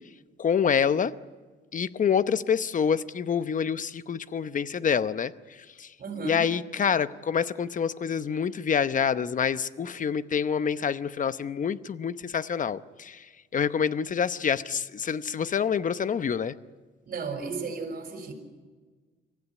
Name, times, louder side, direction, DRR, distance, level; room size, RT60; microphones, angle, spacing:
voice 1, 0.4-1.1 1.7-5.3 5.8-5.9 6.2-13.2 13.5-16.5, left 7 dB, 40° left, 14 dB, 0.8 m, -27 dB
voice 2, 6.0-6.4 17.0-18.3, right 4 dB, 50° right, 4 dB, 6.3 m, -34 dB
25.0 x 15.5 x 9.8 m, 1.4 s
cardioid pair, 90°, 20 cm